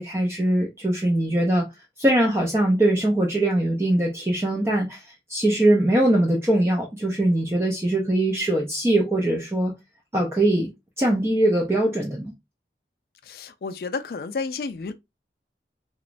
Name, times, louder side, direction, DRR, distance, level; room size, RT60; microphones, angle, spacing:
voice 1, 0.0-1.7 2.0-9.7 10.1-10.7 11.0-12.3, right 1 dB, 15° right, 0.4 m, -22 dB
voice 2, 13.2-14.9, left 4 dB, 55° left, 0.3 m, -31 dB
3.0 x 2.0 x 2.5 m
head